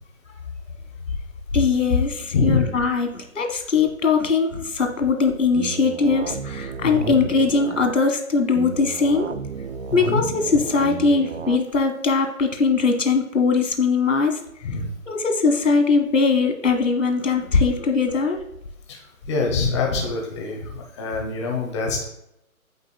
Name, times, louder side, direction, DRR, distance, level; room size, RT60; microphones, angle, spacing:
voice 1, 1.5-9.4 9.9-14.4 15.1-18.5, left 4 dB, 60° left, 4 dB, 1.7 m, -20 dB
voice 2, 2.3-2.7 6.8-7.1 9.9-10.2 14.6-14.9 18.9-19.0 19.3-22.0, left 4 dB, 20° left, 0 dB, 1.1 m, -24 dB
sound 1, 5.6-7.9 8.5-11.6, right 6 dB, 65° right, 0.7 m, -33 dB
15.0 x 5.2 x 2.2 m, 0.81 s
figure-of-eight pair, 140°, 42 cm